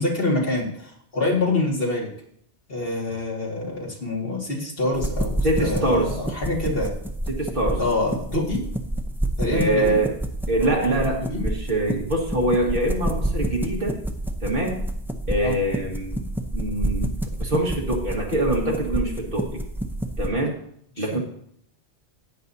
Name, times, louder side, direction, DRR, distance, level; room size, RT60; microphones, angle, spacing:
voice 1, 0.0-2.1 2.7-6.9 7.8-8.6 9.4-10.0 10.6-11.4 15.4-15.6 21.0-21.2, left 2 dB, 60° left, -2 dB, 2.4 m, -26 dB
sound 1, 4.9-20.3, right 1 dB, ahead, 0.6 m, -29 dB
voice 2, 5.4-6.1 7.4-7.8 9.5-10.1 10.5-14.0 14.4-14.8 15.3-16.2 16.5-19.6 20.2-20.6 21.0-21.2, right 1 dB, 50° right, -1 dB, 2.0 m, -24 dB
15.5 x 9.1 x 2.8 m, 0.68 s
omnidirectional pair, 1.1 m